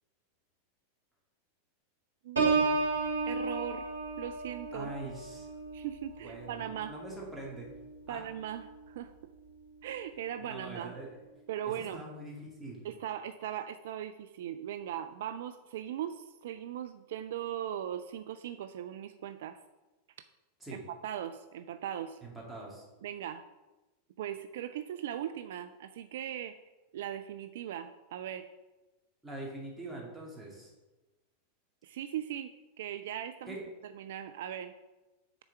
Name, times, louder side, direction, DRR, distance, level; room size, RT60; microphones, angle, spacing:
Piano, 2.4-8.0 8.5-8.8, right 4 dB, 75° right, 1.6 m, -33 dB
voice 1, 2.9-3.9 4.2-4.9 5.7-7.0 8.1-9.3 9.8-10.9 11.5-12.0 12.8-19.6 20.7-22.2 23.0-23.4 24.2-26.5 26.9-28.5 31.8-32.5 32.8-33.6 33.8-34.7, right 10 dB, 55° right, 10 dB, 0.3 m, -39 dB
voice 2, 4.7-5.5 6.2-7.7 8.1-8.2 10.4-11.1 11.6-12.9 20.6-20.8 22.2-22.9 29.2-30.7 33.5-33.6, right 2 dB, ahead, -4 dB, 2.4 m, -43 dB
6.8 x 4.3 x 6.5 m, 1.1 s
figure-of-eight pair, 90°, 0 cm